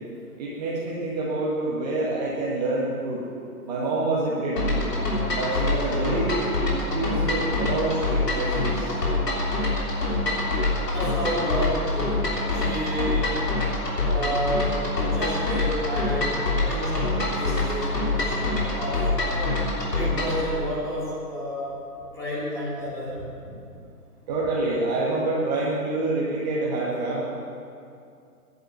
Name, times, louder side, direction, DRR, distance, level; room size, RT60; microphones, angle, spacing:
voice 1, 0.4-3.2 3.6-4.8 5.3-6.4 6.7-8.9 24.3-27.2, right 2 dB, 25° right, -6 dB, 1.7 m, -27 dB
sound 1, 4.6-20.4, left 2 dB, 90° left, 3.6 m, -25 dB
voice 2, 10.9-13.4 14.1-19.6 19.9-21.8 22.1-23.6, equal, 5° left, -9 dB, 2.6 m, -31 dB
10.5 x 8.8 x 8.0 m, 2.5 s
hypercardioid pair, 155°, 47 cm